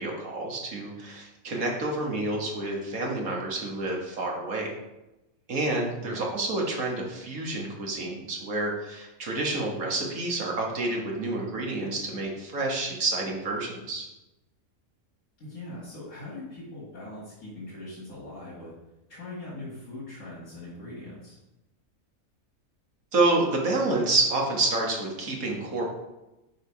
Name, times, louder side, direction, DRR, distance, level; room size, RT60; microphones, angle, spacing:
voice 1, 0.0-4.7 5.5-14.1 23.1-25.9, right 2 dB, 75° right, -1 dB, 1.9 m, -28 dB
voice 2, 15.4-18.7 19.1-21.4, left 2 dB, 70° left, -8 dB, 2.6 m, -41 dB
6.5 x 5.2 x 4.8 m, 0.97 s
omnidirectional pair, 1.4 m